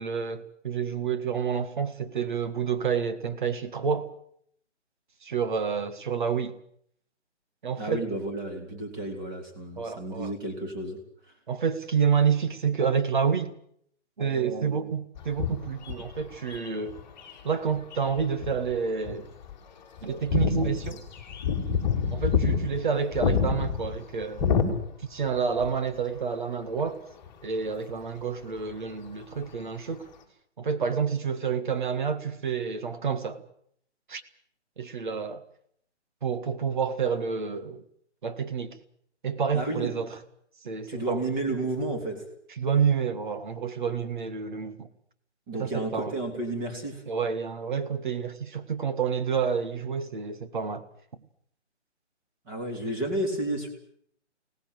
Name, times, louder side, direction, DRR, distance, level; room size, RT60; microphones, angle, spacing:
voice 1, 0.0-4.1 5.2-6.6 7.6-8.0 9.8-10.3 11.5-13.5 14.2-17.0 17.4-19.3 20.0-21.0 22.1-24.5 25.1-27.0 27.4-30.1 30.6-33.4 34.1-34.2 34.8-35.4 36.2-37.8 38.2-38.8 39.2-40.2 40.6-41.3 42.6-44.9 45.5-46.1 47.1-50.8, right 6 dB, 40° right, 1.9 m, -29 dB
voice 2, 7.8-11.0 39.5-39.9 40.9-42.3 45.5-47.0 52.4-53.7, right 1 dB, 15° right, 3.4 m, -31 dB
sound 1, 15.2-17.3 17.9-18.7 19.1-19.2 19.4-19.5 20.0-25.3 25.6-25.7 27.3-27.4, left 6 dB, 10° left, 2.7 m, -27 dB
24.5 x 18.5 x 8.0 m
hypercardioid pair, 170°, 35 cm